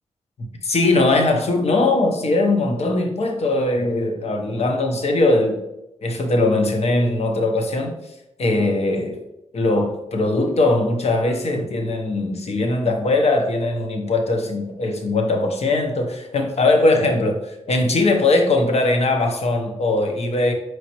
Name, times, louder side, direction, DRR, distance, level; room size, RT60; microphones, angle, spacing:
voice 1, 0.6-5.6 6.0-8.0 8.4-9.2 9.5-20.5, left 2 dB, 65° left, 0.8 m, -20 dB
4.9 x 3.2 x 3.0 m
cardioid pair, 60°, 12 cm